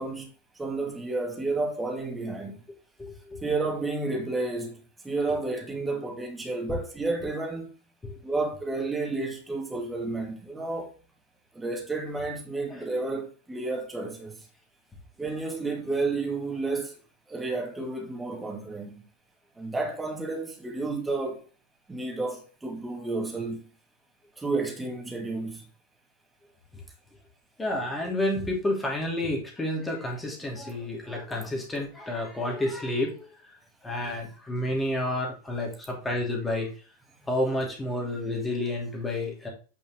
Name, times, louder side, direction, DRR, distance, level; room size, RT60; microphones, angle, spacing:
voice 1, 0.0-2.6 3.4-4.8 5.0-7.7 8.2-10.9 11.5-14.5 15.2-16.9 17.3-19.0 19.6-21.4 21.9-23.7 24.4-25.7, right 3 dB, 10° right, 2.1 m, -31 dB
voice 2, 3.0-3.4 8.0-8.2 12.7-12.9 27.6-33.5 33.8-36.7 37.3-39.5, left 1 dB, 10° left, 2.8 m, -30 dB
8.8 x 5.4 x 3.7 m
figure-of-eight pair, 90°, 0 cm